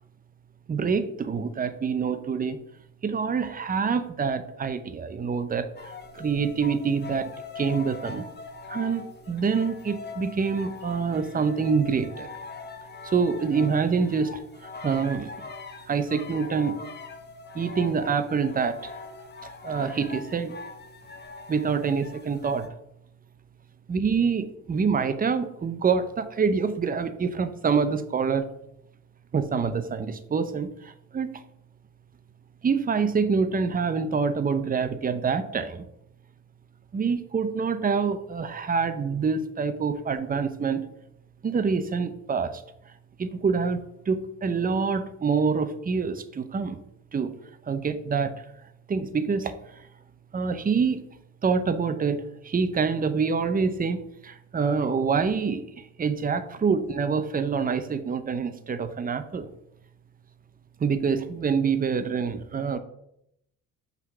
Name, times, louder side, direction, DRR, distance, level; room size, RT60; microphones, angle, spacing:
voice 1, 0.7-2.6 3.0-5.7 6.1-8.2 8.7-12.3 13.0-15.3 15.9-16.8 17.5-19.0 19.4-20.5 21.5-22.7 23.9-28.5 29.3-31.4 32.6-35.8 36.9-40.9 41.4-42.6 43.2-43.8 44.1-46.8 47.1-47.3 47.7-48.3 48.9-49.6 50.3-51.0 51.4-55.6 56.0-59.5 60.8-62.8, right 5 dB, 30° right, 10 dB, 0.7 m, -26 dB
sound 1, 5.8-22.7, left 4 dB, 35° left, 1.1 m, -42 dB
5.7 x 3.8 x 6.0 m, 0.77 s
cardioid pair, 90°, 30 cm